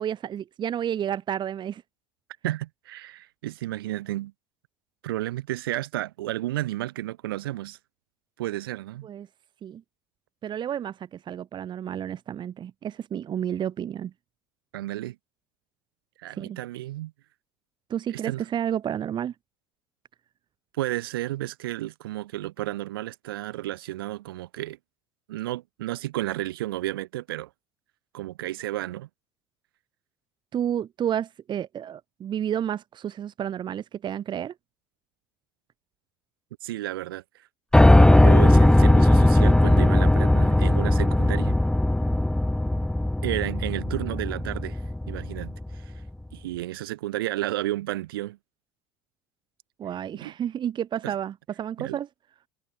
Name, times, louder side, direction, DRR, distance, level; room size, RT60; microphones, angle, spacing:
voice 1, 0.0-1.8 9.0-9.3 9.6-9.8 10.4-14.1 16.3-16.6 17.9-19.3 30.5-34.5 49.8-52.1, right 9 dB, 40° right, 2.0 m, -31 dB
voice 2, 2.4-4.3 5.0-7.8 8.4-9.1 14.7-15.2 16.2-17.1 18.1-18.4 20.7-24.8 25.3-27.5 28.1-29.1 36.6-37.5 38.0-41.6 43.2-44.8 45.1-45.9 46.3-48.4 50.2-50.3 51.0-51.1 51.8-52.0, right 15 dB, 75° right, 3.4 m, -32 dB
Piano, 37.7-45.7, left 1 dB, 5° left, 2.5 m, -18 dB
figure-of-eight pair, 70°, 12 cm